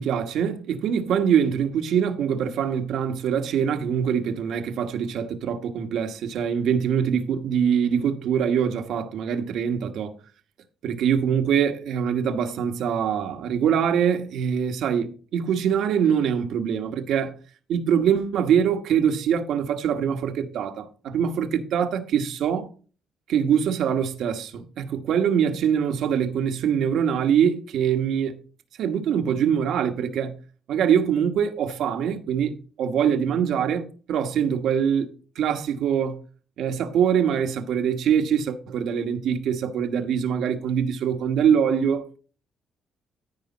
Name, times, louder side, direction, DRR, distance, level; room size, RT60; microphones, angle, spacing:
voice 1, 0.0-10.1 10.8-17.3 17.7-22.7 23.3-28.4 28.8-30.4 30.7-36.2 36.6-42.0, right 8 dB, 80° right, 1.2 m, -23 dB
14.0 x 4.9 x 4.1 m
cardioid pair, 90°, 0 cm